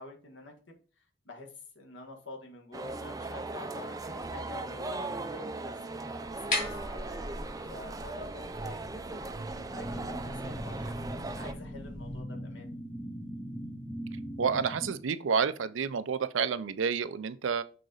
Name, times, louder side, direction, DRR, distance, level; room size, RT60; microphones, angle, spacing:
voice 1, 0.0-6.6 6.9-7.1 7.6-12.7, left 3 dB, 75° left, 1.4 m, -48 dB
sound 1, 2.7-11.5, right 2 dB, 20° right, 0.4 m, -38 dB
sound 2, 6.2-12.2, left 2 dB, 40° left, 2.6 m, -40 dB
sound 3, 9.7-14.9, equal, 10° left, 0.7 m, -40 dB
voice 2, 14.4-17.6, right 6 dB, 85° right, 0.5 m, -29 dB
6.5 x 3.8 x 3.9 m
head